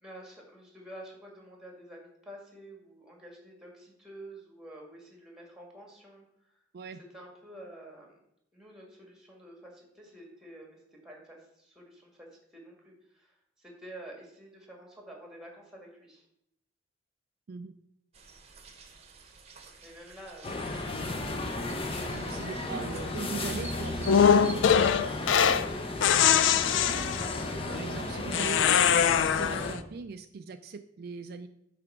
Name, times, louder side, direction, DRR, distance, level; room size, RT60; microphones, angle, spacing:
voice 1, 0.0-6.6 7.1-8.2 8.5-12.3 12.5-16.3 19.8-21.3 22.3-22.9, right 1 dB, 5° right, 0 dB, 1.7 m, -49 dB
sound 1, 18.1-25.0, right 3 dB, 35° right, 0.9 m, -50 dB
sound 2, 20.4-29.8, left 2 dB, 30° left, 0.8 m, -34 dB
voice 2, 22.1-24.6 27.7-31.5, right 4 dB, 55° right, 8 dB, 0.4 m, -40 dB
sound 3, 24.1-25.7 26.0-27.5 28.3-29.7, left 8 dB, 85° left, 0.4 m, -23 dB
8.7 x 3.4 x 5.9 m, 0.77 s
head